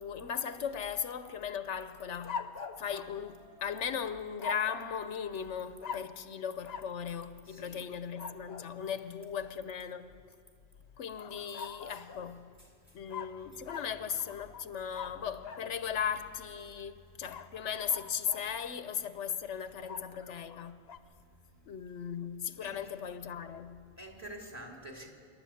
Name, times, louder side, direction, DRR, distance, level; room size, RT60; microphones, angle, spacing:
voice 1, 0.0-2.5 2.8-10.2 11.0-12.5 12.9-20.8 21.7-23.9, left 7 dB, 90° left, 1.1 m, -37 dB
sound 1, 2.2-3.8 4.4-5.0 5.8-6.2 6.6-7.0 8.1-8.7 11.2-12.3 13.1-15.7 17.3-18.5 19.8-21.0, left 6 dB, 65° left, 1.0 m, -43 dB
voice 2, 7.5-7.9 11.6-12.0 13.4-13.6 20.1-20.2 22.6-22.8 24.0-25.1, right 1 dB, 15° right, 3.0 m, -48 dB
26.5 x 12.0 x 8.5 m
omnidirectional pair, 1.2 m